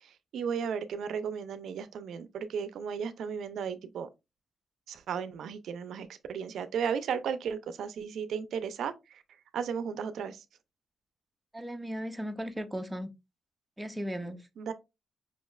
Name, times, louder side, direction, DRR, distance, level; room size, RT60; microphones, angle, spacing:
voice 1, 0.0-4.1 4.9-9.2 9.5-10.4 14.6-14.7, right 7 dB, 85° right, 0.4 m, -35 dB
voice 2, 11.5-13.1 13.8-14.4, equal, 10° right, 0.6 m, -36 dB
5.2 x 3.1 x 2.2 m
cardioid pair, 90°, 0 cm